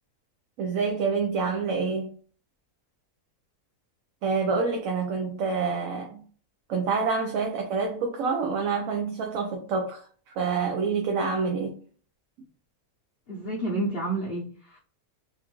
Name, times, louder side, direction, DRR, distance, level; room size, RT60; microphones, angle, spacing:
voice 1, 0.6-2.2 4.2-6.2 6.7-10.1 10.4-11.8, right 5 dB, 65° right, 0.9 m, -27 dB
voice 2, 13.3-14.8, right 2 dB, 50° left, 0.7 m, -30 dB
3.7 x 2.5 x 2.8 m
omnidirectional pair, 1.6 m